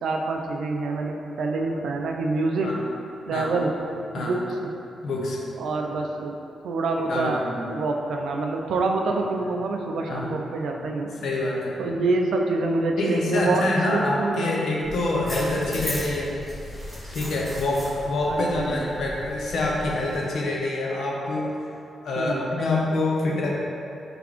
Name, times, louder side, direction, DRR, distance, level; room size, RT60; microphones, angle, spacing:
voice 1, 0.0-2.7 3.3-3.7 4.2-4.7 5.6-6.4 6.6-11.3 11.8-13.6 13.9-14.5 18.3-18.8 22.2-22.5, right 3 dB, 75° right, 2 dB, 0.4 m, -26 dB
voice 2, 5.0-5.4 7.1-7.7 10.1-10.4 11.2-11.7 13.0-16.4 17.1-21.5 22.0-23.5, left 2 dB, 60° left, -3 dB, 0.6 m, -26 dB
sound 1, 14.8-20.2, equal, 15° left, 1.1 m, -37 dB
4.0 x 3.4 x 3.0 m, 2.8 s
wide cardioid pair, 165°, 0 cm